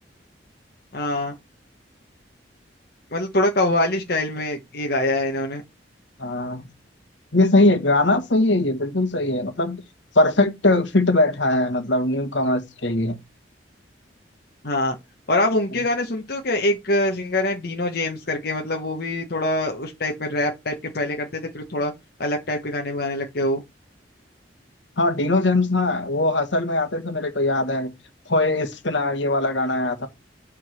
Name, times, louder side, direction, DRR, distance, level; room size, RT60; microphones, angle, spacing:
voice 1, 0.9-1.3 3.1-5.6 14.6-15.0 15.3-21.9 22.2-23.6, left 1 dB, 55° left, 1.1 m, -24 dB
voice 2, 6.2-6.7 7.3-9.8 10.1-13.2 25.0-27.9 28.3-30.1, left 2 dB, 75° left, 1.5 m, -21 dB
7.7 x 3.7 x 6.2 m
head